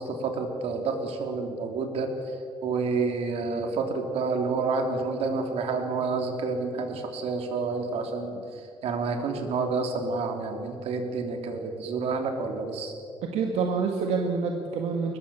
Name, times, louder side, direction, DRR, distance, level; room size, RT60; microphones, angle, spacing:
voice 1, 0.0-2.1 2.6-8.4 8.8-12.9, right 4 dB, 70° right, 4 dB, 3.4 m, -29 dB
voice 2, 13.2-15.2, right 5 dB, 90° right, 2 dB, 1.9 m, -27 dB
22.5 x 20.5 x 7.0 m, 2.5 s
cardioid pair, 140°, 11 cm